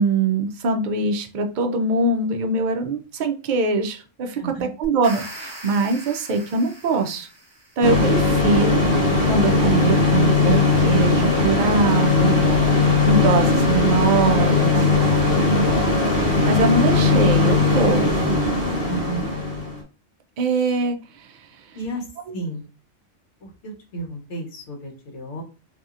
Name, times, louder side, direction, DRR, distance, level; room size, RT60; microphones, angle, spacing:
voice 1, 0.0-4.5 4.8-7.3 7.8-8.8 9.3-12.4 12.8-14.9 16.4-18.6 20.4-21.4 22.3-22.4, right 3 dB, 65° right, 5 dB, 0.4 m, -22 dB
voice 2, 4.3-4.7 15.0-15.4 18.9-19.3 21.7-22.1 22.3-22.6 23.4-25.4, right 2 dB, 65° left, 1 dB, 1.1 m, -33 dB
sound 1, 4.8-8.0, right 1 dB, 35° right, 1.0 m, -40 dB
sound 2, 7.8-19.8, left 3 dB, 50° left, 1.3 m, -19 dB
2.8 x 2.7 x 2.4 m, 0.33 s
omnidirectional pair, 1.3 m